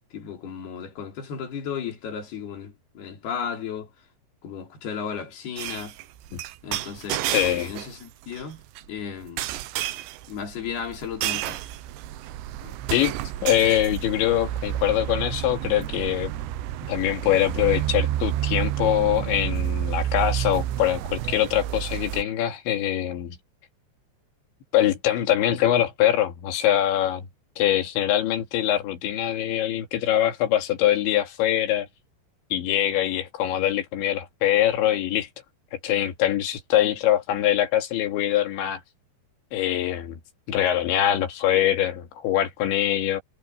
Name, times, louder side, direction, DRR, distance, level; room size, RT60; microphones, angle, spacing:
voice 1, 0.1-3.9 4.4-5.9 6.6-8.6 8.9-9.5 10.3-11.6 12.6-12.8 36.8-36.9, left 7 dB, 60° left, 5.3 m, -34 dB
sound 1, 5.6-8.0 8.3-8.8 9.4-22.2, right 13 dB, 85° right, 3.2 m, -30 dB
voice 2, 7.3-7.7 12.9-13.2 13.4-16.3 16.9-23.4 24.7-27.3 27.6-31.9 32.5-35.3 35.7-38.8 39.5-40.2 40.5-43.2, left 12 dB, 85° left, 4.4 m, -23 dB
omnidirectional pair, 5.1 m